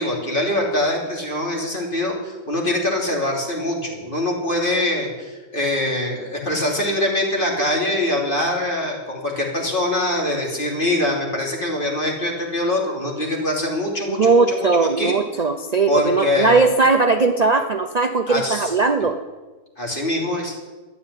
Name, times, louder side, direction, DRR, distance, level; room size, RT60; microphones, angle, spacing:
voice 1, 0.0-14.7 15.0-15.1 15.9-16.6 18.3-18.7 19.8-20.6, left 1 dB, 30° left, -1 dB, 3.4 m, -23 dB
voice 2, 14.2-19.2, right 3 dB, 55° right, 6 dB, 0.4 m, -18 dB
13.0 x 9.6 x 9.8 m, 1.3 s
omnidirectional pair, 1.8 m